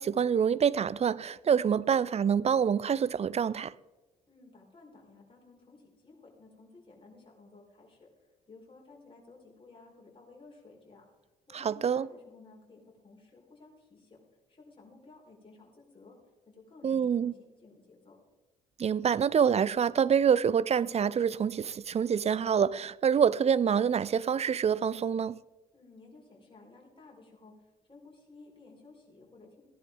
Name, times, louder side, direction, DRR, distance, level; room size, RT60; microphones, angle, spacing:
voice 1, 0.0-3.7 11.5-12.1 16.8-17.3 18.8-25.4, right 7 dB, 35° right, 0.5 m, -26 dB
voice 2, 4.3-8.1 8.5-11.0 11.5-14.2 14.5-16.2 16.4-18.2 25.7-27.5 27.9-29.6, left 3 dB, 25° left, 5.1 m, -55 dB
16.5 x 11.0 x 3.9 m
hypercardioid pair, 50°, 20 cm